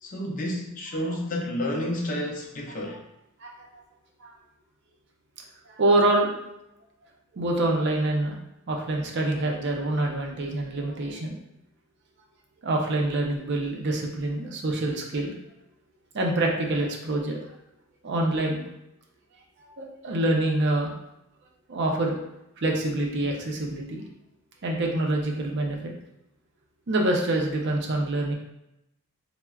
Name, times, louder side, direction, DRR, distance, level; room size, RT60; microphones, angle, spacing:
voice 1, 0.0-3.0, left 1 dB, 40° left, 0 dB, 0.5 m, -30 dB
voice 2, 5.7-6.3 7.3-8.3 8.7-11.4 12.6-15.3 16.1-17.4 18.0-18.6 19.6-20.9 21.7-22.2 22.6-24.0 24.6-25.9 26.9-28.3, right 2 dB, 55° right, 0 dB, 0.5 m, -26 dB
4.4 x 2.0 x 2.3 m, 0.85 s
head